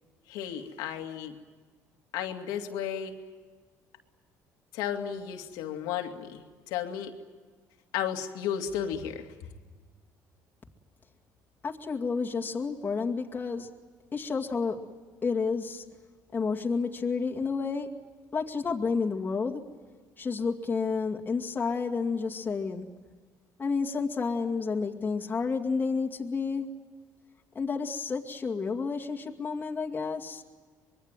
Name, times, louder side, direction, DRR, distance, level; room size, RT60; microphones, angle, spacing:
voice 1, 0.3-1.4 2.1-3.1 4.7-7.1 7.9-9.3, left 9 dB, 90° left, 5 dB, 2.4 m, -33 dB
voice 2, 11.6-13.7 14.1-14.8 15.2-15.8 16.3-17.9 18.3-19.6 20.2-22.9 23.6-26.7 27.5-30.4, left 5 dB, 25° left, 0 dB, 2.3 m, -30 dB
25.5 x 22.0 x 9.2 m, 1.4 s
cardioid pair, 105°, 7 cm